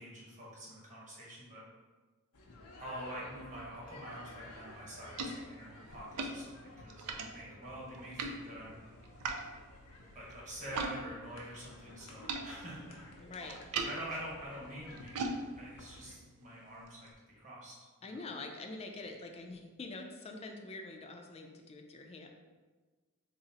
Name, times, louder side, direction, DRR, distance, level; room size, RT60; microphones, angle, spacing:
voice 1, 0.0-1.6 2.8-8.8 10.1-13.0 13.3-13.5 13.8-15.2 15.6-17.7 18.0-18.2, right 1 dB, 35° right, -6 dB, 1.0 m, -46 dB
sound 1, 2.3-16.2, left 2 dB, 80° left, 0.6 m, -54 dB
sound 2, 4.5-11.0 11.2-17.1, right 3 dB, 90° right, 0.4 m, -43 dB
voice 2, 13.2-13.6 18.0-22.3, left 3 dB, 30° left, 3 dB, 0.3 m, -45 dB
3.8 x 2.0 x 3.9 m, 1.3 s
head